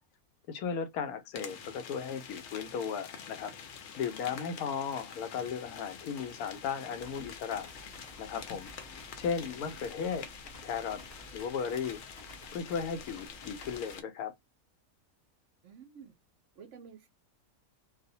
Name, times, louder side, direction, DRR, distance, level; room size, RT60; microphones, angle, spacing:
voice 1, 0.5-3.5 4.0-7.8 8.2-10.3 10.6-11.0 11.3-12.0 12.5-14.3, left 6 dB, 90° left, 1.1 m, -36 dB
sound 1, 1.3-14.0, left 6 dB, 70° left, 0.9 m, -47 dB
voice 2, 4.3-4.7 15.6-16.1 16.6-17.1, right 6 dB, 65° right, 0.8 m, -52 dB
sound 2, 7.0-14.0, equal, 30° left, 0.7 m, -54 dB
2.6 x 2.0 x 2.6 m
omnidirectional pair, 1.5 m